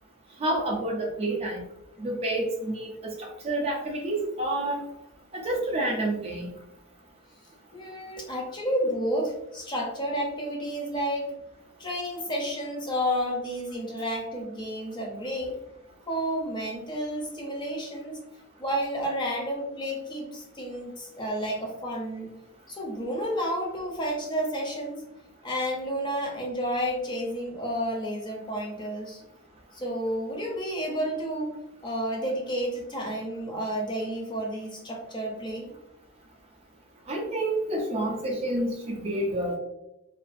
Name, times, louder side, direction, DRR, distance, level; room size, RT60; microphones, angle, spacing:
voice 1, 0.4-1.6 2.0-4.8 5.3-6.5 37.1-39.6, right 1 dB, 30° right, 0 dB, 0.4 m, -29 dB
voice 2, 7.7-11.3 11.8-15.5 16.1-18.2 18.6-22.3 22.7-25.0 25.4-29.2 29.7-31.6 31.8-35.7, equal, 20° left, -1 dB, 0.5 m, -31 dB
2.4 x 2.3 x 2.4 m, 0.86 s
head